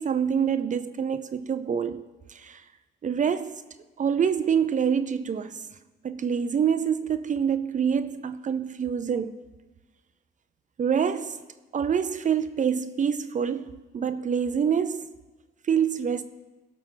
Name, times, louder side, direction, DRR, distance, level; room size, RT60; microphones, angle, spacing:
voice 1, 0.0-2.6 3.0-3.6 4.0-5.6 6.0-9.3 10.8-11.4 11.7-15.1 15.7-16.2, right 7 dB, 40° right, 0.5 m, -26 dB
16.0 x 6.0 x 3.8 m
cardioid pair, 90°, 20 cm